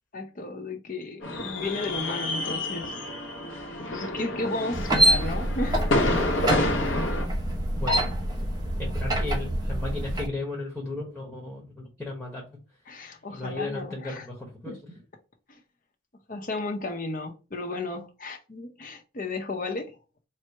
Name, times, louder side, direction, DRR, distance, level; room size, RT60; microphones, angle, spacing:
voice 1, 0.1-2.9 3.9-5.8 12.9-14.3 14.7-14.8 15.5-15.6 16.3-20.0, left 2 dB, 40° left, 0.6 m, -34 dB
sound 1, 1.2-7.3, left 1 dB, 75° left, 1.0 m, -29 dB
sound 2, 4.7-10.3, right 1 dB, 20° right, 0.8 m, -26 dB
voice 2, 7.7-8.1 8.8-12.4 13.3-15.0, left 2 dB, ahead, 1.0 m, -35 dB
4.4 x 2.0 x 4.5 m
head